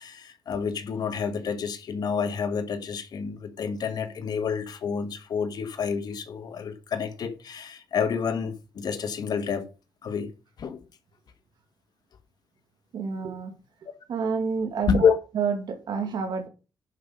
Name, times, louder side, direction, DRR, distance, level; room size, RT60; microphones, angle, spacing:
voice 1, 0.0-9.7 10.0-10.3 10.6-10.8 14.9-15.1, left 6 dB, 70° left, 1.5 m, -28 dB
voice 2, 12.9-13.5 14.1-16.5, right 5 dB, 85° right, 2.3 m, -29 dB
11.0 x 5.4 x 5.2 m
cardioid pair, 100°, 7 cm